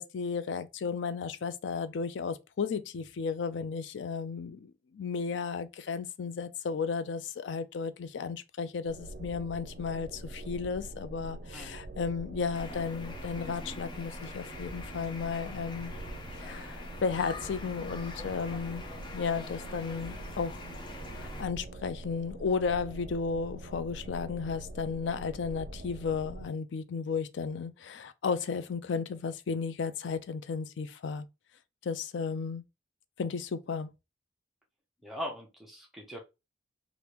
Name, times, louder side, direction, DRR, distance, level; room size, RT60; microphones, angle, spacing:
voice 1, 0.0-15.9 16.4-18.8 19.1-20.6 21.1-31.3 31.8-32.6 33.2-33.9, left 5 dB, 80° left, 0.4 m, -34 dB
sound 1, 8.9-26.5, right 1 dB, 55° right, 0.4 m, -44 dB
sound 2, 12.5-21.4, left 3 dB, 25° left, 0.5 m, -45 dB
voice 2, 35.0-36.2, equal, ahead, 0.8 m, -40 dB
3.3 x 2.5 x 2.9 m
head